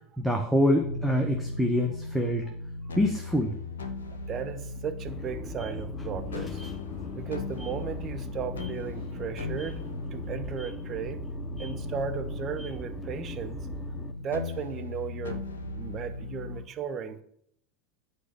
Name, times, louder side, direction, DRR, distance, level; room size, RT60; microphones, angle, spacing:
voice 1, 0.2-2.4 3.0-3.6, left 1 dB, ahead, 2 dB, 1.0 m, -25 dB
sound 1, 0.8-16.6, left 2 dB, 70° left, 1.0 m, -37 dB
voice 2, 4.3-6.6 7.1-9.9 10.1-11.2 11.6-13.7 14.2-17.2, right 7 dB, 35° right, 8 dB, 0.9 m, -36 dB
sound 2, 5.1-14.1, left 3 dB, 20° left, 0.8 m, -41 dB
8.6 x 5.0 x 6.7 m, 0.69 s
figure-of-eight pair, 80°, 0 cm